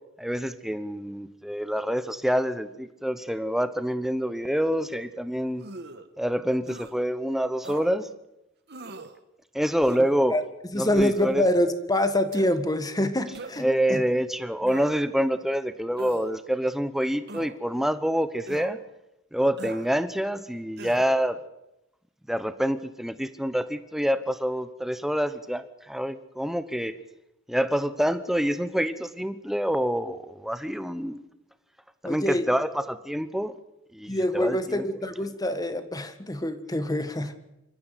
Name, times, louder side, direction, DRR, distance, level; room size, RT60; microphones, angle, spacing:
voice 1, 0.2-5.6 6.2-8.1 9.5-10.4 10.8-11.4 13.6-18.8 19.3-21.4 22.3-26.9 27.5-31.2 32.0-33.5 33.9-34.8, equal, ahead, 12 dB, 1.0 m, -27 dB
sound 1, 5.6-6.1 6.7-6.9 7.6-7.9 8.7-9.1 9.8-10.2 10.9-11.3 12.3-12.5 13.3-13.7 14.6-15.1 16.0-16.3 17.3-17.6 18.5-18.7 19.6-19.9 20.8-21.1, right 2 dB, 55° right, 1.5 m, -40 dB
voice 2, 10.7-14.0 32.0-32.5 34.1-37.3, left 1 dB, 20° left, 10 dB, 1.6 m, -26 dB
26.5 x 14.0 x 8.3 m, 0.88 s
head